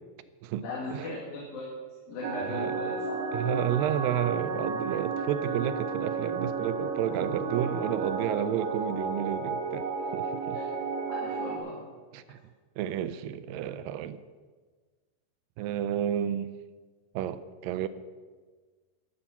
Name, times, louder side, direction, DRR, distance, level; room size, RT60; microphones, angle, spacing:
voice 1, 0.6-1.8 2.1-3.3 10.5-10.7 11.1-11.8, left 2 dB, 80° left, -3 dB, 3.8 m, -38 dB
sound 1, 2.2-11.6, right 4 dB, 65° right, 2.4 m, -32 dB
voice 2, 3.3-9.9 10.1-10.6 12.1-12.4 12.8-14.2 15.6-16.5 17.2-17.9, right 10 dB, 80° right, 14 dB, 2.2 m, -31 dB
13.0 x 11.5 x 5.8 m, 1.4 s
omnidirectional pair, 4.1 m